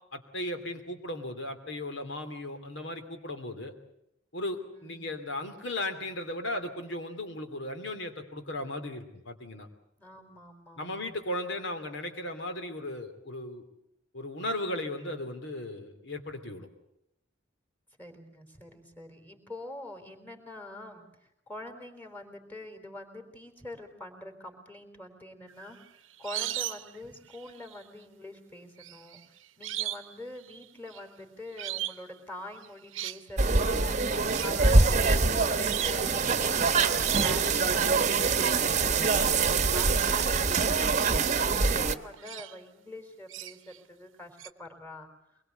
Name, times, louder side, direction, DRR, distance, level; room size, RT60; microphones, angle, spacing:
voice 1, 0.1-3.7 4.3-9.7 10.8-13.6 14.1-16.7, left 1 dB, 65° left, 8 dB, 2.9 m, -36 dB
voice 2, 4.7-5.2 10.0-11.1 18.0-39.2 39.7-45.1, left 1 dB, 10° left, 6 dB, 3.8 m, -45 dB
sound 1, 25.5-27.0 27.3-27.8 28.8-30.1 30.4-31.0 31.6-32.0 32.6-33.2 34.3-34.6 35.2-35.3 35.7-36.1 37.0-37.6 39.0-39.1 39.4-40.5 40.9-42.6 43.3-43.8 44.4-44.5, right 14 dB, 70° right, 0.9 m, -37 dB
sound 2, 33.4-41.9, right 4 dB, 40° right, 1.1 m, -24 dB
24.0 x 22.0 x 8.1 m, 0.79 s
head